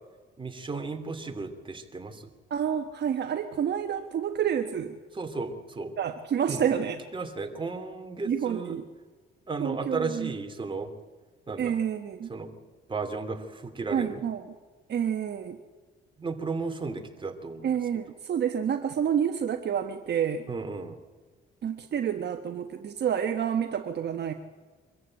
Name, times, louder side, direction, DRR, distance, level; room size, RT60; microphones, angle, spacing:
voice 1, 0.4-2.2 5.1-6.0 6.5-6.6 7.1-8.8 9.5-10.9 11.5-11.8 12.3-12.6 12.9-14.2 16.2-17.7 20.5-21.0, right 3 dB, 25° right, 5 dB, 2.8 m, -34 dB
voice 2, 2.5-4.9 6.0-7.0 8.2-8.9 9.6-10.3 11.6-12.3 13.9-14.5 14.9-15.6 17.6-20.4 21.6-24.3, right 8 dB, 60° right, 6 dB, 1.3 m, -29 dB
24.0 x 14.5 x 8.9 m, 1.4 s
cardioid pair, 90°, 20 cm